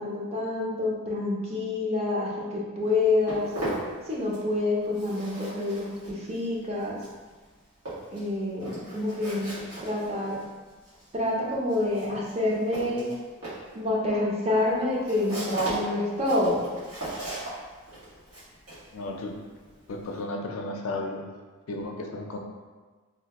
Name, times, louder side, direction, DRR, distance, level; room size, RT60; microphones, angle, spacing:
voice 1, 0.0-3.5 4.1-7.0 8.1-9.5 9.8-10.4 11.1-13.1 13.7-16.6, left 2 dB, 30° right, -4 dB, 0.5 m, -27 dB
Walk footsteps, 2.8-4.6 4.8-20.2, right 1 dB, 90° right, 1.5 m, -39 dB
voice 2, 18.9-19.4 19.9-21.2 21.7-22.4, left 2 dB, 70° left, 2 dB, 0.4 m, -34 dB
3.3 x 2.4 x 2.9 m, 1.4 s
head